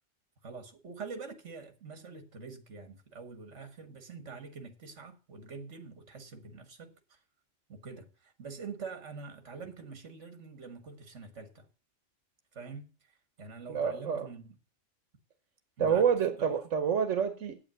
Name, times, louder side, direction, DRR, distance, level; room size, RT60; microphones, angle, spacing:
voice 1, 0.4-7.2 7.7-11.6 12.5-12.9 13.4-14.6 15.8-16.1, right 4 dB, 70° right, 1.9 m, -45 dB
voice 2, 13.7-14.3 15.8-17.6, right 7 dB, 90° right, 1.3 m, -28 dB
8.7 x 8.7 x 7.6 m
omnidirectional pair, 1.3 m